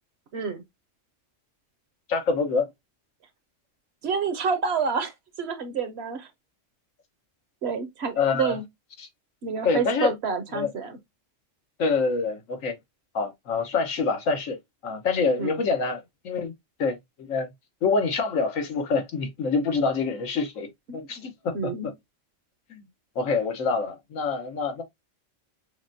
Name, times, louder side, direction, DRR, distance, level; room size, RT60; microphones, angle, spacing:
voice 1, 0.3-0.6 4.0-5.1 5.4-6.3 7.6-8.6 9.4-11.0 15.4-15.6 20.9-21.2 21.5-21.9, right 5 dB, 60° right, 1.0 m, -28 dB
voice 2, 2.1-2.7 8.2-8.6 9.0-9.1 9.6-10.1 10.5-10.7 11.8-12.8 13.1-14.6 14.8-16.5 16.8-17.5 17.8-21.7 22.7-22.8 23.1-24.8, left 4 dB, 85° left, 1.4 m, -26 dB
6.4 x 2.2 x 2.6 m
omnidirectional pair, 1.3 m